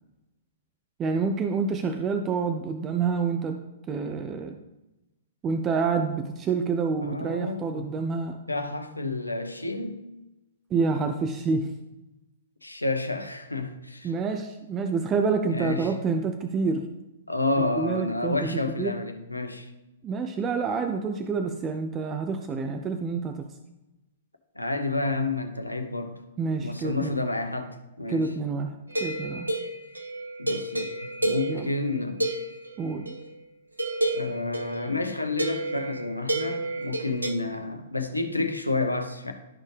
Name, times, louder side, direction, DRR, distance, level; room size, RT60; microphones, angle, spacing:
voice 1, 1.0-3.6 3.9-4.6 5.4-8.4 10.7-11.7 14.0-16.9 17.6-19.0 20.0-23.5 26.4-27.1 28.1-29.5 31.5-31.7 32.8-33.1, right 4 dB, 20° right, 6 dB, 0.5 m, -28 dB
voice 2, 7.0-7.9 8.5-10.0 12.6-14.1 15.5-15.9 17.3-19.7 24.6-26.2 26.6-28.3 30.4-30.9 31.2-32.3 34.1-39.3, left 2 dB, 85° left, 6 dB, 0.9 m, -30 dB
sound 1, 28.9-33.3 33.8-37.3, right 1 dB, 80° right, 1.0 m, -30 dB
12.0 x 4.2 x 3.3 m, 0.98 s
figure-of-eight pair, 115°, 0 cm